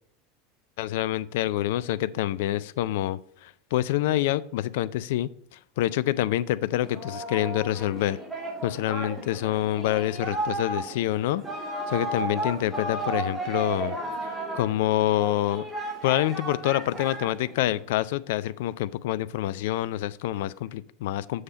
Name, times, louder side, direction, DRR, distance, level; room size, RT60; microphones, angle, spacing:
voice 1, 0.8-8.2 8.6-11.4 11.9-14.0 14.6-15.6 16.0-21.4, left 14 dB, 60° left, 18 dB, 0.4 m, -27 dB
Singing, 6.8-17.8, right 1 dB, 5° right, 3.1 m, -34 dB
7.2 x 6.5 x 4.3 m, 0.66 s
figure-of-eight pair, 80°, 0 cm